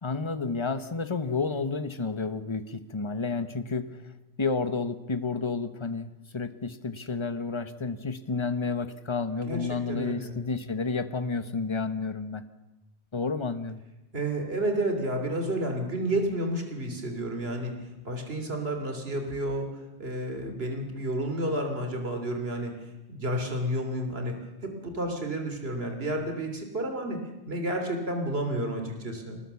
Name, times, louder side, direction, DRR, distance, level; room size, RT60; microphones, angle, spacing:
voice 1, 0.0-4.0 4.4-12.5 13.1-13.8, left 4 dB, 25° left, 10 dB, 1.1 m, -31 dB
voice 2, 9.4-10.4 14.1-19.7 20.0-22.7 23.1-24.4 24.6-27.2 27.5-29.4, right 1 dB, 65° right, 5 dB, 3.3 m, -31 dB
24.5 x 19.5 x 7.1 m, 1.0 s
omnidirectional pair, 1.1 m